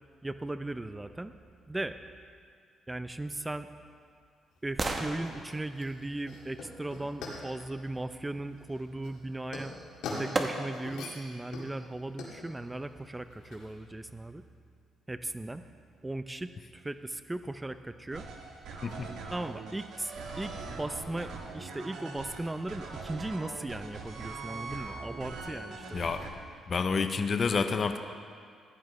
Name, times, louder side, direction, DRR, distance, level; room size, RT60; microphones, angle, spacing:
voice 1, 0.2-1.3 1.7-2.0 2.9-3.7 4.6-9.7 10.2-14.4 15.1-15.6 16.0-18.3 19.3-26.1, right 2 dB, 15° right, 11 dB, 0.5 m, -37 dB
sound 1, 3.3-7.3 9.4-9.5 10.3-11.0 11.5-11.6, right 3 dB, 30° right, 1.0 m, -38 dB
sound 2, 4.5-13.8, left 3 dB, 85° left, 2.2 m, -44 dB
sound 3, 18.1-26.3, right 4 dB, 75° right, 1.5 m, -42 dB
voice 2, 26.7-28.0, left 5 dB, 45° left, 8 dB, 0.6 m, -28 dB
15.0 x 11.0 x 3.2 m, 2.2 s
cardioid pair, 90°, 0 cm